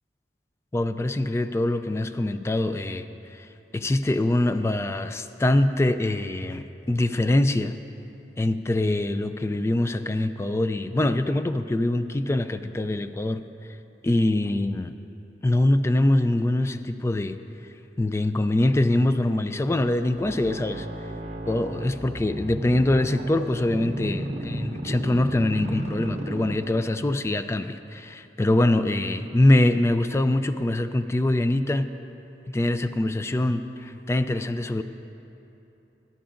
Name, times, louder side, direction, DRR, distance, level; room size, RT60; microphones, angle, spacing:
voice 1, 0.7-3.0 3.3-3.5 3.7-7.7 8.4-13.4 14.0-14.9 15.4-17.4 18.0-20.9 21.5-31.9 32.5-34.8, left 1 dB, 15° left, 10 dB, 0.3 m, -24 dB
sound 1, 20.1-27.1, right 1 dB, 40° right, 1.0 m, -33 dB
21.0 x 11.0 x 2.5 m, 3.0 s
head